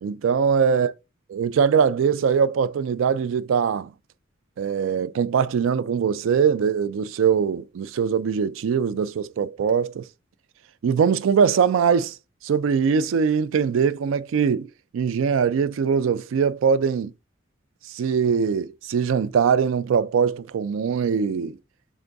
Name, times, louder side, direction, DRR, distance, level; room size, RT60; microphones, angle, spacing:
voice 1, 0.0-0.9 1.3-3.9 4.6-10.1 10.8-12.2 12.4-17.1 17.9-21.6, right 6 dB, 80° right, 0.3 m, -22 dB
3.9 x 3.6 x 3.4 m
head